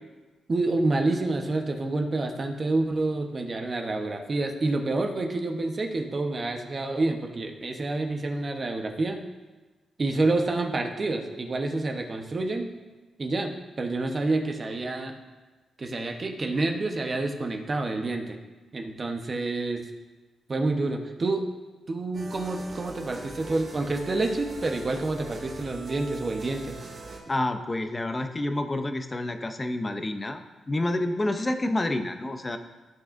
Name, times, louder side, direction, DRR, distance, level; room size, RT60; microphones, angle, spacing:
voice 1, 0.5-9.2 10.0-12.7 13.2-15.2 15.8-18.4 18.7-19.9 20.5-21.5 21.9-26.8, right 2 dB, 35° right, 3 dB, 1.0 m, -28 dB
sound 1, 22.1-27.2, right 2 dB, 55° right, 2.4 m, -40 dB
voice 2, 27.3-32.6, left 1 dB, 20° left, 7 dB, 0.6 m, -28 dB
15.0 x 6.1 x 2.6 m, 1.2 s
cardioid pair, 110°, 0 cm